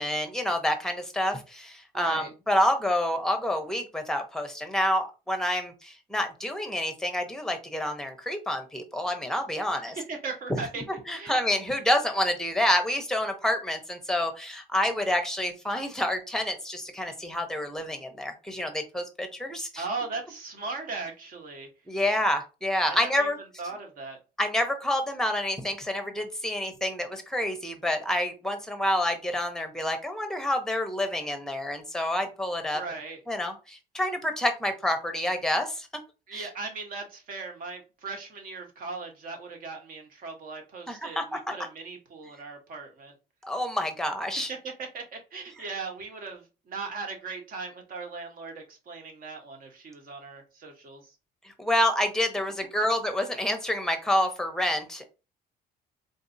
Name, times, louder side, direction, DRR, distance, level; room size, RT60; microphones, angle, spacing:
voice 1, 0.0-9.9 11.1-19.8 21.9-23.4 24.4-33.0 33.3-35.9 36.3-36.5 40.9-41.4 43.4-44.5 51.4-55.0, left 1 dB, 5° left, 6 dB, 0.8 m, -28 dB
voice 2, 1.9-2.3 9.7-10.8 11.1-11.4 19.8-21.7 22.9-24.2 32.7-33.2 36.3-43.1 44.5-51.2, right 4 dB, 55° right, 4 dB, 1.2 m, -38 dB
3.9 x 2.6 x 2.6 m, 0.30 s
cardioid pair, 110°, 17 cm